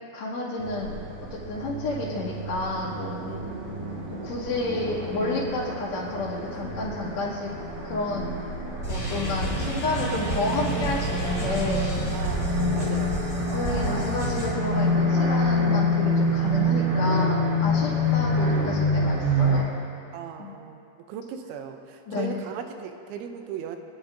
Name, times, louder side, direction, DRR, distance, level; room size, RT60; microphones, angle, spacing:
voice 1, 0.1-0.9 1.5-3.3 4.2-7.5 7.8-8.3 8.9-12.3 13.5-19.7 20.4-20.5 22.1-22.4, left 2 dB, 70° left, -8 dB, 3.7 m, -30 dB
sound 1, 0.6-19.6, left 1 dB, 55° right, 3.6 m, -27 dB
voice 2, 3.3-3.9 12.1-13.3 17.0-17.4 17.9-18.0 20.1-20.8 21.1-23.8, right 8 dB, 85° right, 6 dB, 3.1 m, -38 dB
sound 2, 8.8-14.5, right 1 dB, 25° left, 1.4 m, -31 dB
26.0 x 9.6 x 2.7 m, 2.5 s
omnidirectional pair, 5.2 m